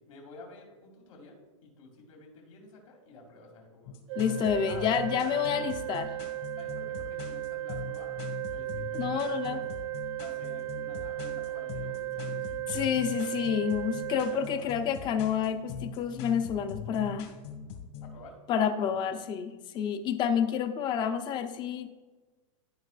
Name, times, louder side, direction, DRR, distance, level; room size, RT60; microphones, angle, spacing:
voice 1, 0.1-4.9 5.2-5.8 6.5-9.6 10.2-13.8 14.2-14.8 18.0-18.4 18.8-19.2, left 3 dB, 85° left, 0 dB, 2.5 m, -51 dB
sound 1, 3.9-18.2, left 6 dB, 55° left, 1.7 m, -41 dB
Organ, 4.1-15.1, right 14 dB, 65° right, 0.4 m, -36 dB
voice 2, 4.2-6.1 8.9-9.6 12.7-17.3 18.5-22.0, left 8 dB, 25° left, 9 dB, 0.6 m, -29 dB
13.5 x 5.3 x 2.4 m, 1.3 s
supercardioid pair, 150°, 17 cm